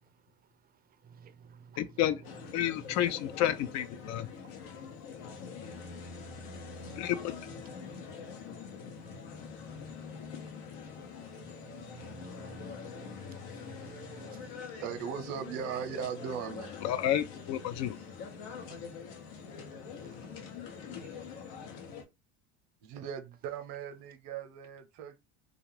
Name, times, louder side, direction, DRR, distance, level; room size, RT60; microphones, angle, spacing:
voice 1, 1.8-2.2 2.5-4.3 7.0-7.3 16.8-17.9, left 11 dB, 55° left, 0.4 m, -30 dB
sound 1, 2.2-22.0, left 5 dB, 75° left, 0.8 m, -44 dB
voice 2, 11.9-13.1 13.7-14.5, right 6 dB, 30° right, 0.5 m, -51 dB
voice 3, 14.8-16.7 22.8-25.2, right 7 dB, 75° right, 0.7 m, -38 dB
2.4 x 2.3 x 3.2 m
supercardioid pair, 90°, 33 cm